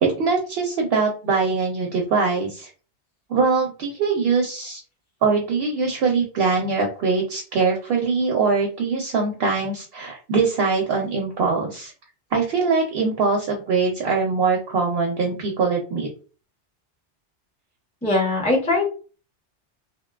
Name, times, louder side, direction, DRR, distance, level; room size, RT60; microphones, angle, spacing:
voice 1, 0.0-2.7 3.3-4.8 5.2-11.9 12.3-16.1, right 4 dB, 65° right, 1 dB, 0.7 m, -22 dB
voice 2, 18.0-18.9, left 2 dB, 10° left, -1 dB, 0.5 m, -20 dB
2.7 x 2.1 x 2.3 m, 0.36 s
omnidirectional pair, 1.2 m